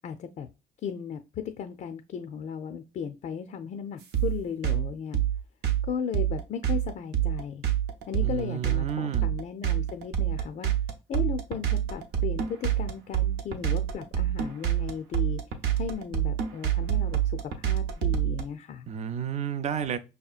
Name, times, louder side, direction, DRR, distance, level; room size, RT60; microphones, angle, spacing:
voice 1, 0.0-0.5 0.8-5.2 5.9-7.6 8.1-10.7 11.1-15.4 15.7-18.9, left 7 dB, 50° left, 0.4 m, -36 dB
sound 1, 4.1-18.4, right 11 dB, 80° right, 0.7 m, -26 dB
voice 2, 8.2-9.3 18.9-20.0, right 8 dB, 40° right, 0.5 m, -31 dB
5.3 x 2.8 x 2.4 m
cardioid pair, 110°, 17 cm